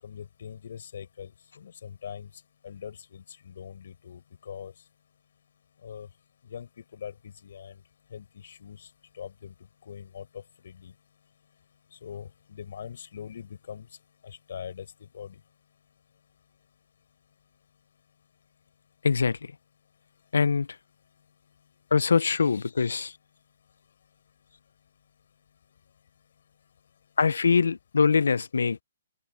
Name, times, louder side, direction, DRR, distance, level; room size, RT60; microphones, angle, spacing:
voice 1, 0.0-2.3 2.6-4.7 5.8-6.1 6.4-7.8 8.1-8.9 9.1-9.5 9.9-10.9 11.9-13.9 14.2-15.4, left 8 dB, 65° left, 5.8 m, -42 dB
voice 2, 19.0-19.4 20.3-20.7 21.9-23.1 27.2-28.8, left 5 dB, 85° left, 0.6 m, -23 dB
open air
hypercardioid pair, 145°, 0 cm